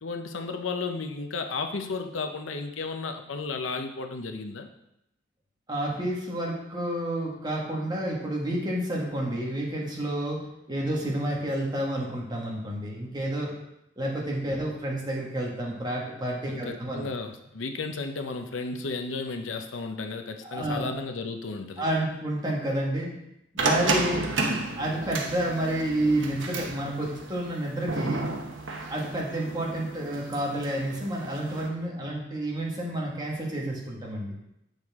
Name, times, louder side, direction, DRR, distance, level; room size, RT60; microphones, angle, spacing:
voice 1, 0.0-4.7 14.5-14.6 16.4-21.8, left 4 dB, 90° left, 5 dB, 0.7 m, -33 dB
voice 2, 5.7-10.4 10.7-13.5 14.0-17.0 20.4-20.9 21.8-23.1 23.5-24.3 24.8-28.3 28.9-34.4, right 1 dB, 20° right, -3 dB, 1.8 m, -30 dB
sound 1, 23.6-31.7, right 3 dB, 75° right, 1.1 m, -32 dB
8.1 x 6.6 x 3.6 m, 0.83 s
head